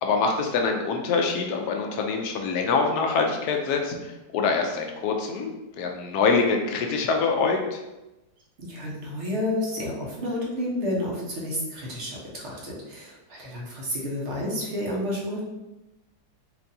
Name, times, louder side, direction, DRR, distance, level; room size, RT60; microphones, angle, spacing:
voice 1, 0.0-7.8, left 4 dB, 75° left, 3 dB, 1.0 m, -25 dB
voice 2, 8.6-15.4, left 1 dB, 50° right, -3 dB, 1.0 m, -30 dB
4.5 x 2.6 x 2.6 m, 1.0 s
omnidirectional pair, 1.8 m